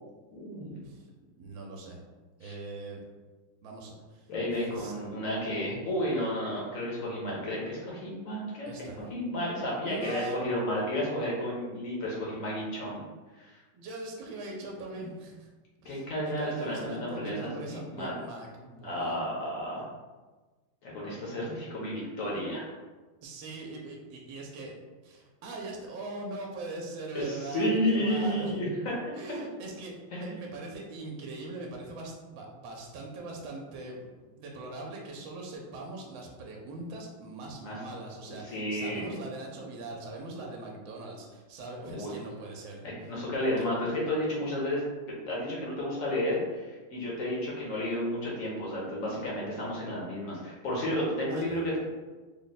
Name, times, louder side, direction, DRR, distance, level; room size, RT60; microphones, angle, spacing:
voice 1, 0.3-0.8 2.4-2.5 4.3-8.7 9.1-13.0 13.4-13.5 15.8-18.1 18.8-19.9 20.8-22.7 27.1-28.9 30.1-30.4 37.6-37.8 38.2-39.1 41.8-42.1 42.8-44.8 45.2-51.8, left 1 dB, 55° left, -4 dB, 1.0 m, -32 dB
voice 2, 1.4-2.0 2.4-3.0 3.6-4.3 4.7-4.9 8.7-9.0 9.8-10.4 13.7-15.5 15.8-19.2 23.2-24.7 25.0-28.6 29.1-43.1 43.6-43.7 51.5-51.6, right 2 dB, 80° right, 0 dB, 1.4 m, -41 dB
3.6 x 2.1 x 4.0 m, 1.3 s
omnidirectional pair, 2.1 m